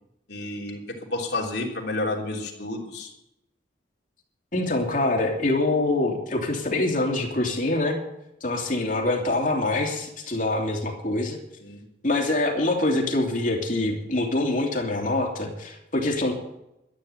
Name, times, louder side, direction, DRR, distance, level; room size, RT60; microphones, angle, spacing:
voice 1, 0.3-0.8 1.1-3.1 11.6-11.8, left 2 dB, 65° left, -1 dB, 3.2 m, -30 dB
voice 2, 4.5-8.0 8.4-11.4 12.0-16.3, left 2 dB, 45° left, 1 dB, 3.0 m, -25 dB
12.5 x 11.0 x 8.1 m, 0.86 s
head